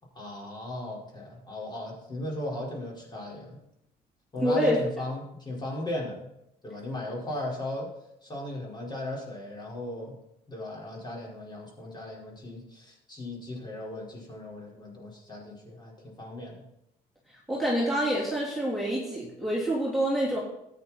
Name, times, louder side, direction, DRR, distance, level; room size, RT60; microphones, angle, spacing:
voice 1, 0.2-3.6 4.3-6.3 6.6-7.9 8.2-10.1 10.5-16.6, left 1 dB, 25° left, -3 dB, 5.1 m, -36 dB
voice 2, 4.4-4.8 17.5-20.4, equal, ahead, -7 dB, 3.3 m, -27 dB
13.5 x 9.2 x 4.5 m, 0.81 s
cardioid pair, 110°, 17 cm